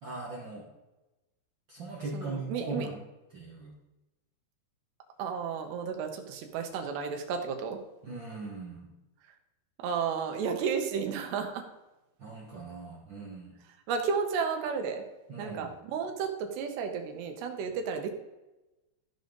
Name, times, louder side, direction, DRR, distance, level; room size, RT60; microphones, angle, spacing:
voice 1, 0.0-0.7 1.7-3.0 3.3-3.7 8.0-8.9 12.2-13.5 15.3-15.7, right 2 dB, 65° right, -4 dB, 1.1 m, -39 dB
voice 2, 2.1-2.9 5.2-7.8 9.8-11.6 13.9-15.0 15.4-18.1, right 6 dB, 90° right, 4 dB, 3.3 m, -32 dB
14.5 x 5.4 x 3.9 m, 1.0 s
omnidirectional pair, 4.7 m